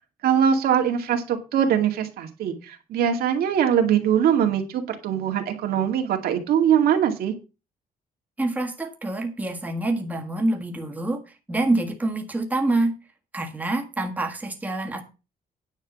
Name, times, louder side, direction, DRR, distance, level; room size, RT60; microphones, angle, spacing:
voice 1, 0.2-7.3, right 8 dB, 85° right, 4 dB, 2.2 m, -22 dB
voice 2, 8.4-11.2 11.5-12.9 13.3-15.0, right 2 dB, 10° right, 2 dB, 1.7 m, -26 dB
9.7 x 6.0 x 7.2 m, 0.30 s
cardioid pair, 160°, 15 cm